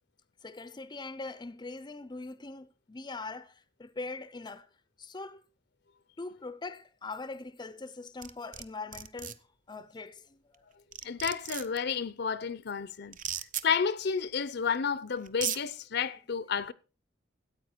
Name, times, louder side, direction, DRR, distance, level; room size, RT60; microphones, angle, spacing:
voice 1, 0.4-4.7 5.0-5.4 6.2-9.4 9.7-10.6, left 3 dB, 25° left, 0.6 m, -42 dB
sound 1, 8.2-8.6 8.9-9.3 10.5-10.6 10.9-11.8 13.1-13.6 14.7-14.8 15.3-15.6, right 9 dB, 45° right, 0.7 m, -35 dB
voice 2, 11.0-13.2 13.6-16.7, left 6 dB, 60° left, 0.7 m, -31 dB
13.5 x 8.8 x 4.5 m
head